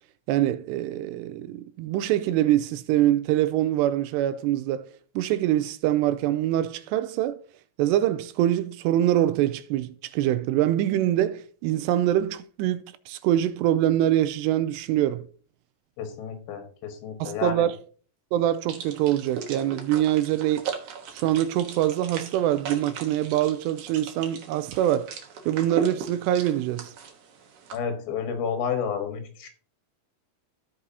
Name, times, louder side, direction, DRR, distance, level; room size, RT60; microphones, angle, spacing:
voice 1, 0.3-4.9 5.2-7.4 7.8-15.3 17.2-17.8 18.3-20.7 21.1-25.1 25.5-26.9, right 12 dB, 85° right, 2.6 m, -24 dB
voice 2, 16.0-17.7 27.7-29.5, left 7 dB, 80° left, 3.8 m, -31 dB
sound 1, 18.7-27.8, right 6 dB, 65° right, 2.0 m, -38 dB
15.5 x 5.4 x 2.7 m
omnidirectional pair, 5.0 m